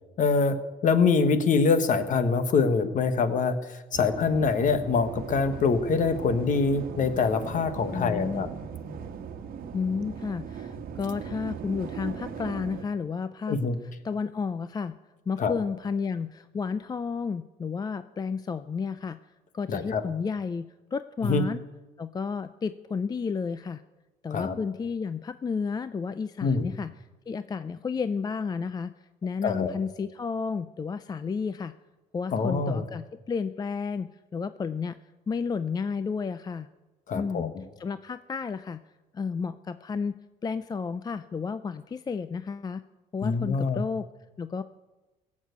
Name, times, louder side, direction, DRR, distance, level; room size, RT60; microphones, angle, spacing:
voice 1, 0.2-0.6 0.8-8.5 13.5-13.7 15.4-15.5 19.7-20.0 21.2-21.4 24.3-24.6 26.4-26.7 29.4-29.7 32.3-32.8 37.1-37.6 43.2-43.8, left 4 dB, 50° left, 10 dB, 1.4 m, -24 dB
sound 1, 3.9-12.8, right 7 dB, 60° right, 1.3 m, -39 dB
voice 2, 7.9-8.5 9.7-13.6 14.0-14.9 15.3-19.2 19.5-21.6 22.0-23.8 24.2-26.9 27.3-28.9 29.2-31.7 32.1-35.0 35.3-36.7 37.1-37.5 37.8-38.8 39.1-40.2 40.4-42.8 43.1-44.1 44.4-44.6, left 5 dB, 25° left, 13 dB, 0.4 m, -32 dB
17.0 x 7.5 x 8.2 m, 1.1 s
cardioid pair, 110°, 17 cm